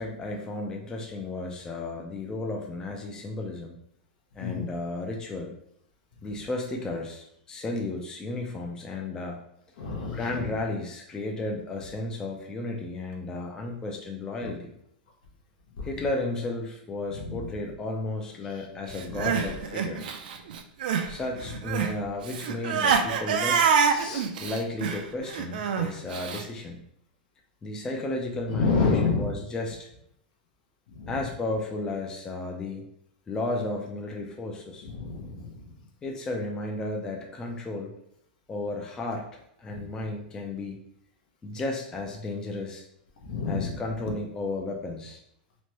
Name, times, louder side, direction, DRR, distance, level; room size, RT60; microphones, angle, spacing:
voice 1, 0.0-3.8 4.3-5.5 6.2-9.4 10.1-14.7 15.8-20.1 21.1-23.7 24.4-26.8 27.6-29.9 31.1-32.8 33.3-34.9 36.0-37.9 38.5-40.8 41.4-42.8 43.5-45.2, left 2 dB, 15° left, 0 dB, 0.3 m, -33 dB
voice 2, 9.8-10.5 14.4-14.5 15.8-15.9 17.1-17.6 18.4-18.7 19.1-19.5 21.8-21.9 23.9-24.3 28.5-29.4 30.9-31.2 34.8-35.7 39.7-40.0 43.2-43.8, left 4 dB, 70° left, 0 dB, 0.7 m, -30 dB
Crying sobbing, 19.0-21.1 21.4-26.4, right 6 dB, 70° right, 0.4 m, -26 dB
3.0 x 2.1 x 2.9 m, 0.73 s
hypercardioid pair, 140°, 5 cm